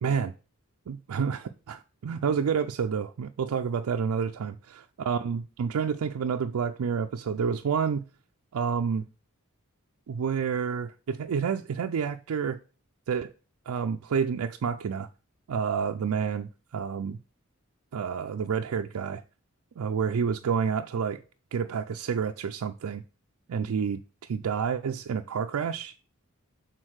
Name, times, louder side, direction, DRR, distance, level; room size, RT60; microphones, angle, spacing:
voice 1, 0.0-0.3 0.9-8.0 8.5-9.1 10.1-12.6 13.1-13.3 13.7-15.1 15.5-17.2 17.9-19.2 19.8-21.2 21.5-23.0 23.5-25.9, right 6 dB, 85° right, 0.4 m, -29 dB
6.3 x 3.9 x 6.3 m
head